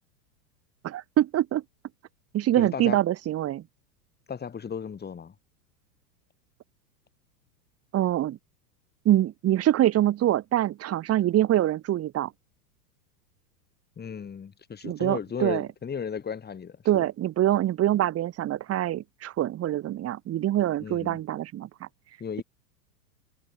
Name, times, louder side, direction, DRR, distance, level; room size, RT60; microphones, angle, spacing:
voice 1, 0.8-1.6 2.3-3.6 7.9-8.4 9.1-12.3 14.8-15.7 16.9-21.9, right 13 dB, 30° right, 2.0 m, -25 dB
voice 2, 2.6-3.0 4.3-5.3 14.0-17.1 20.8-21.2 22.2-22.4, left 6 dB, 20° left, 7.0 m, -35 dB
hypercardioid pair, 115°, 50 cm